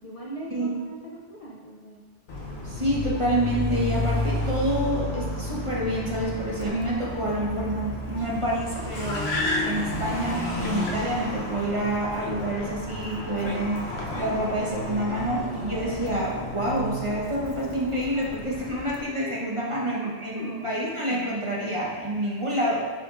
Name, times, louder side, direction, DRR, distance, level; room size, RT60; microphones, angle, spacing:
voice 1, 0.0-2.0 19.7-20.7, right 1 dB, 40° left, -4 dB, 0.6 m, -41 dB
Car, 2.3-19.0, left 1 dB, 65° left, 1.0 m, -31 dB
voice 2, 2.6-22.8, right 1 dB, 30° right, -4 dB, 1.0 m, -28 dB
7.0 x 5.4 x 2.5 m, 1.5 s
omnidirectional pair, 1.2 m